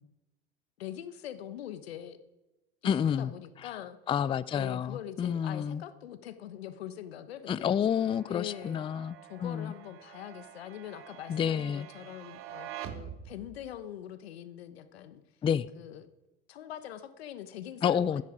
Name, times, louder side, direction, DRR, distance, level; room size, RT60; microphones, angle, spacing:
voice 1, 0.8-2.2 2.8-4.0 4.5-7.7 8.3-8.9 9.2-15.2 15.7-16.1 16.5-18.2, left 11 dB, 90° left, 12 dB, 1.1 m, -43 dB
voice 2, 2.8-3.3 3.6-3.7 4.1-5.8 7.5-9.7 11.3-11.9 15.4-15.7 17.8-18.2, left 8 dB, 20° left, 18 dB, 0.4 m, -29 dB
sound 1, 7.9-13.8, right 10 dB, 45° right, 1.3 m, -47 dB
13.0 x 9.8 x 5.0 m, 1.0 s
hypercardioid pair, 95°, 30 cm